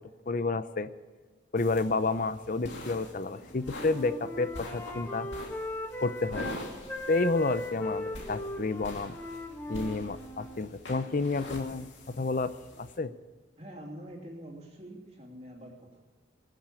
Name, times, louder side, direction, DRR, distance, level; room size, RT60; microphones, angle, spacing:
voice 1, 0.3-0.9 1.5-5.3 6.0-6.5 7.1-9.2 9.7-12.5 12.8-13.1, left 3 dB, 45° left, 12 dB, 0.6 m, -30 dB
sound 1, 1.6-13.0, left 1 dB, 65° left, 2.6 m, -45 dB
Wind instrument woodwind instrument, 3.5-6.6 6.9-10.6, left 1 dB, 10° left, 1.5 m, -39 dB
voice 2, 13.6-16.0, right 1 dB, 30° right, 0 dB, 2.8 m, -45 dB
21.0 x 7.5 x 8.4 m, 1.4 s
head